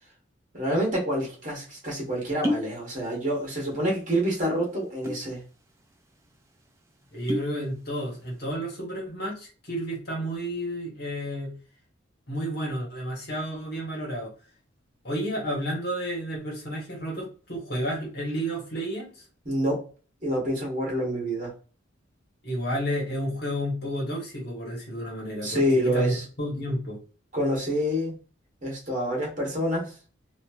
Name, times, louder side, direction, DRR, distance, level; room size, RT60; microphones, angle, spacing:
voice 1, 0.5-5.4 19.4-19.8 20.2-21.5 25.4-26.2 27.3-28.1 28.6-29.9, equal, 40° right, -3 dB, 1.4 m, -27 dB
sound 1, 1.4-1.5 2.2-2.8 3.0-3.7 4.0-4.1 4.8-5.3 5.8-5.9 6.2-6.4 7.0-7.6 8.0-8.4, left 1 dB, 15° right, 0.4 m, -31 dB
voice 2, 7.1-11.5 12.3-14.3 15.0-19.1 22.4-27.0, equal, 50° left, -2 dB, 1.3 m, -31 dB
3.1 x 2.6 x 2.4 m, 0.36 s
head